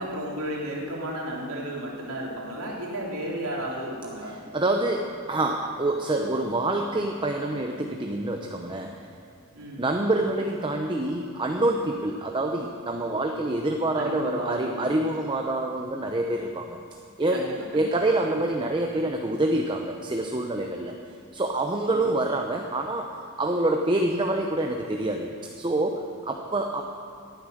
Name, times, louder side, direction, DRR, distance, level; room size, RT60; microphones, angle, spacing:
voice 1, 0.0-4.4 9.5-9.8 13.9-14.9 17.3-18.1 21.9-22.1, right 1 dB, 80° right, -3 dB, 3.0 m, -33 dB
voice 2, 4.5-9.0 9.8-16.8 17.2-17.5 17.7-20.9 21.3-23.1 23.4-25.3 25.6-26.8, right 2 dB, 20° right, 3 dB, 0.7 m, -26 dB
18.0 x 9.4 x 6.5 m, 2.4 s
head